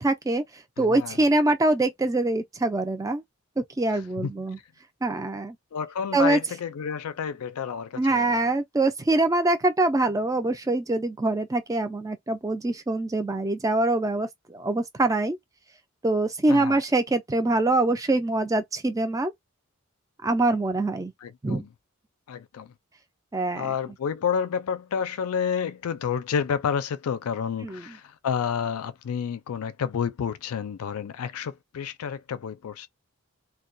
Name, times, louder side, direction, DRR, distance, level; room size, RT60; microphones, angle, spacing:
voice 1, 0.0-3.2 3.6-4.6 5.0-5.6 6.1-6.4 8.0-15.4 16.0-19.3 20.2-21.1 21.4-21.6 23.3-23.7 27.6-28.0, right 2 dB, 15° right, 0.3 m, -24 dB
voice 2, 0.8-1.2 3.9-4.3 5.7-8.4 16.5-16.8 21.2-21.7 22.3-22.7 23.6-32.9, left 7 dB, 85° left, 0.4 m, -30 dB
2.2 x 2.2 x 2.5 m
head